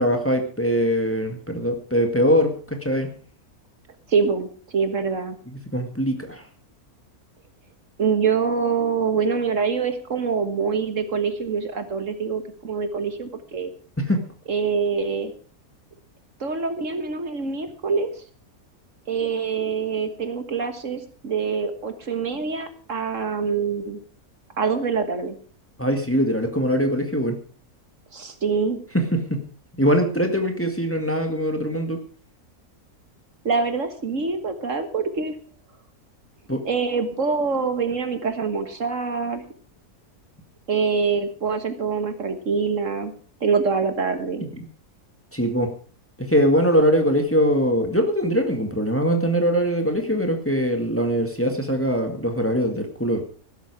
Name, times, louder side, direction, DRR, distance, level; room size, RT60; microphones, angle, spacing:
voice 1, 0.0-3.1 5.5-6.4 14.0-14.2 25.8-27.4 28.9-29.5 29.8-32.0 36.5-36.6 44.5-44.6 45.3-45.7 46.2-53.2, equal, 10° left, 4 dB, 1.9 m, -22 dB
voice 2, 4.1-5.4 8.0-13.7 14.5-15.3 16.4-18.1 19.1-24.0 24.6-25.4 28.1-28.8 33.5-35.3 36.7-39.4 40.7-43.1 43.4-44.5, right 5 dB, 60° right, 9 dB, 1.8 m, -25 dB
15.5 x 12.5 x 4.8 m, 0.40 s
omnidirectional pair, 1.5 m